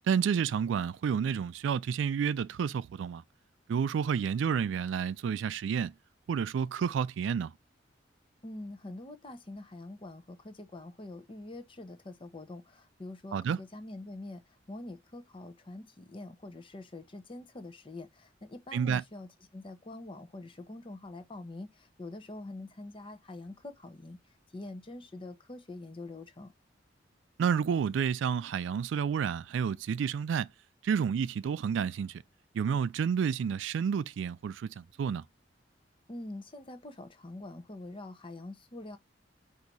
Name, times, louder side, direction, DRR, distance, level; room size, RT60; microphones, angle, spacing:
voice 1, 0.1-3.2 3.7-5.9 6.3-7.5 13.3-13.6 18.7-19.0 27.4-30.5 30.8-32.2 32.5-35.2, right 7 dB, 75° right, 0.3 m, -30 dB
voice 2, 8.4-14.4 14.7-24.2 24.5-26.5 36.1-39.0, left 2 dB, 30° left, 0.8 m, -45 dB
4.0 x 2.7 x 4.6 m
head